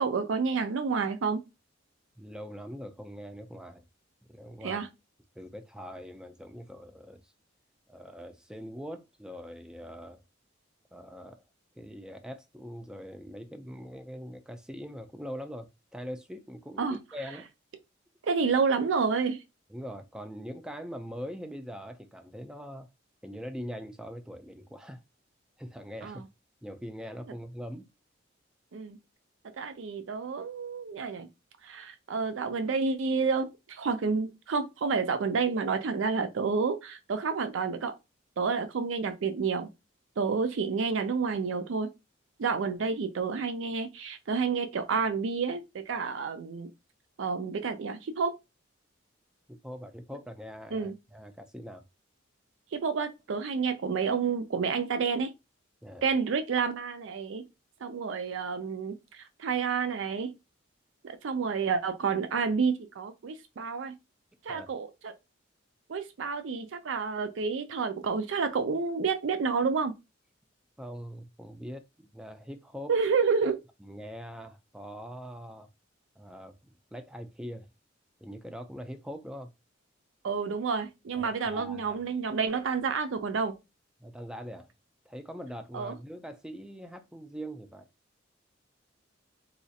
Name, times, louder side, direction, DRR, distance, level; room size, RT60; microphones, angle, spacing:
voice 1, 0.0-1.4 4.6-4.9 16.8-17.0 18.2-19.4 26.0-26.2 28.7-29.0 29.6-31.3 31.6-37.9 38.4-39.7 40.2-41.9 42.4-46.7 47.2-48.4 50.7-50.9 52.7-55.3 56.0-57.4 57.8-60.3 61.0-63.9 64.4-65.1 65.9-69.9 72.9-73.6 80.2-83.5 85.7-86.0, right 5 dB, 75° right, 0.4 m, -29 dB
voice 2, 2.2-3.8 4.3-4.8 5.4-7.3 7.9-10.2 10.9-11.4 11.8-17.5 19.7-22.9 23.2-25.0 25.6-26.2 26.6-27.9 49.5-51.8 55.8-56.1 64.5-64.7 70.8-72.9 73.8-75.7 76.2-76.6 76.9-77.7 78.2-79.5 81.2-82.0 84.0-84.7 85.1-87.9, equal, 5° right, 0.3 m, -42 dB
4.1 x 2.4 x 2.7 m
head